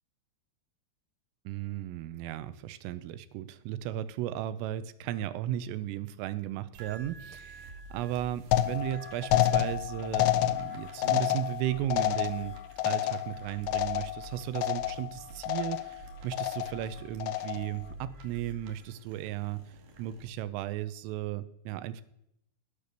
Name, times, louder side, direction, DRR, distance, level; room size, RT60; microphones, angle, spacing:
voice 1, 1.5-12.6 12.9-19.7 20.0-22.0, right 12 dB, 90° right, 13 dB, 3.5 m, -35 dB
sound 1, 6.7-20.3, right 1 dB, 55° right, 3.4 m, -49 dB
sound 2, 8.5-14.3 14.6-15.1 15.4-16.0 16.3-16.8 17.2-17.8, left 13 dB, 80° left, 2.7 m, -29 dB
19.0 x 10.5 x 6.7 m, 0.77 s
omnidirectional pair, 5.7 m